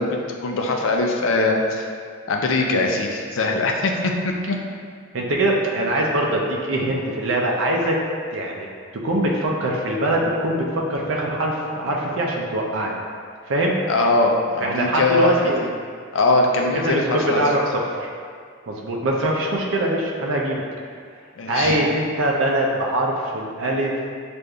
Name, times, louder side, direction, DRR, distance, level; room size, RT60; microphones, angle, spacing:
voice 1, 0.0-1.8 2.3-4.6 13.9-15.7 16.1-17.4 21.4-21.8, left 2 dB, 70° left, 1 dB, 0.5 m, -21 dB
voice 2, 5.1-8.0 8.3-8.7 9.0-10.6 10.9-12.9 13.5-13.7 14.6-15.6 16.8-18.1 18.7-20.6 21.5-23.9, right 1 dB, 70° right, -2 dB, 0.5 m, -22 dB
6.4 x 2.5 x 2.3 m, 2.1 s
head